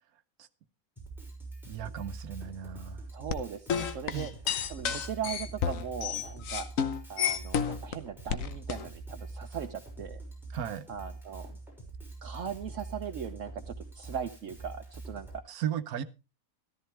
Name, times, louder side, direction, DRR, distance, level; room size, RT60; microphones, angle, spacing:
Drum kit, 1.0-15.4, right 3 dB, ahead, 6.0 m, -44 dB
voice 1, 1.7-3.0 4.1-4.3 4.9-5.1 10.5-10.8 15.5-16.0, right 9 dB, 80° right, 1.3 m, -36 dB
voice 2, 3.1-4.3 4.7-6.7 7.1-10.2 10.9-11.5 12.2-15.4, right 8 dB, 65° right, 1.1 m, -39 dB
sound 1, 3.3-7.9 8.3-8.9, left 8 dB, 65° left, 1.3 m, -31 dB
14.0 x 13.5 x 3.3 m
omnidirectional pair, 1.5 m